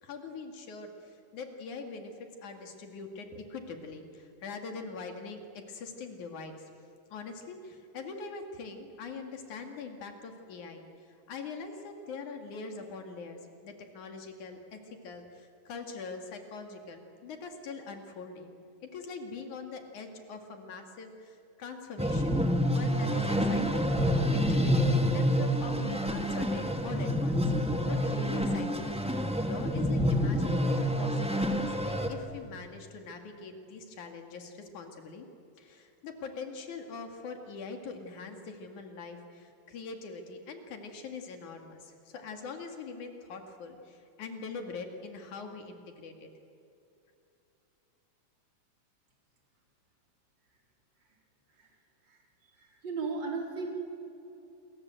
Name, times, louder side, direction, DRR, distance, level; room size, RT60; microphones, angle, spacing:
voice 1, 0.0-6.7 7.1-18.6 18.8-27.4 27.9-35.3 35.6-46.3, left 4 dB, 75° left, 4 dB, 3.8 m, -43 dB
sound 1, 22.0-32.1, equal, 5° right, 1.1 m, -28 dB
voice 2, 52.5-53.7, right 4 dB, 35° right, 0 dB, 4.6 m, -36 dB
28.5 x 22.5 x 7.9 m, 2.8 s
omnidirectional pair, 3.5 m